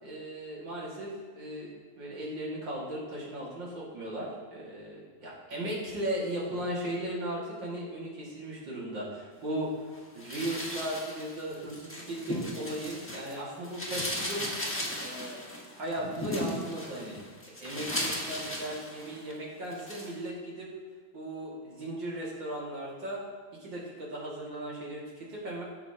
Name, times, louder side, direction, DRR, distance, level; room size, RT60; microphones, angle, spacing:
voice 1, 0.0-1.7 2.0-14.6 15.0-15.4 15.7-17.2 17.6-20.7 21.1-23.2 23.6-25.6, right 1 dB, 60° right, -5 dB, 2.9 m, -37 dB
sound 1, 10.2-13.3 13.6-19.3 19.7-20.1, left 1 dB, 10° left, 1.1 m, -37 dB
15.5 x 7.4 x 2.9 m, 1.5 s
omnidirectional pair, 2.2 m